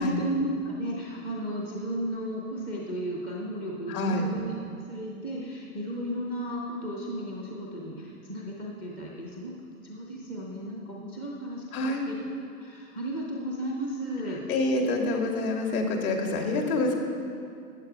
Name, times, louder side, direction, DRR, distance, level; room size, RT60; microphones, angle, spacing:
voice 1, 0.0-4.6 4.9-9.6 9.8-12.2 12.6-14.4, right 1 dB, 10° left, -3 dB, 0.4 m, -34 dB
voice 2, 3.9-4.3 11.7-12.0 14.5-17.0, left 2 dB, 65° left, 2 dB, 2.3 m, -27 dB
14.0 x 9.0 x 4.8 m, 2.4 s
hypercardioid pair, 135°, 47 cm